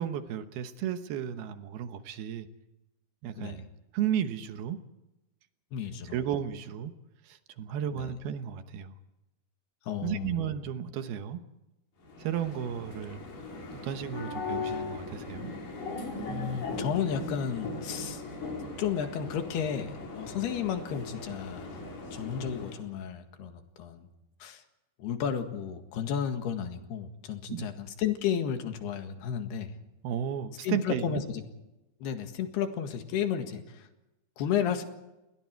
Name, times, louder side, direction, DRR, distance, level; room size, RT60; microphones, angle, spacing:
voice 1, 0.0-2.5 3.2-3.7 3.9-4.8 6.1-6.9 7.2-8.9 10.0-11.4 12.2-13.2 13.7-15.5 27.5-27.7 30.0-31.2, right 9 dB, 80° right, 9 dB, 3.1 m, -33 dB
voice 2, 5.7-6.2 7.9-8.1 9.9-10.5 16.3-18.2 18.8-21.8 22.1-24.1 24.4-24.6 25.0-29.7 30.6-31.4 32.0-33.9 34.4-34.8, left 8 dB, 85° left, 6 dB, 3.8 m, -33 dB
sound 1, 12.0-22.9, left 3 dB, 60° left, 5.8 m, -39 dB
30.0 x 21.0 x 4.6 m, 0.96 s
omnidirectional pair, 4.5 m